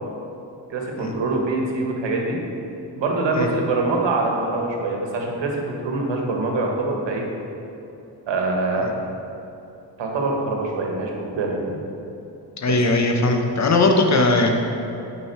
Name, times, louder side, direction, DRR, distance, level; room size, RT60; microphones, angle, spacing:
voice 1, 0.7-2.4 3.0-7.2 8.3-9.0 10.0-11.8 12.7-12.8, right 2 dB, 75° right, 0 dB, 1.6 m, -24 dB
voice 2, 12.6-14.5, left 2 dB, 40° left, 3 dB, 1.1 m, -19 dB
8.8 x 5.4 x 4.7 m, 2.9 s
cardioid pair, 90°, 45 cm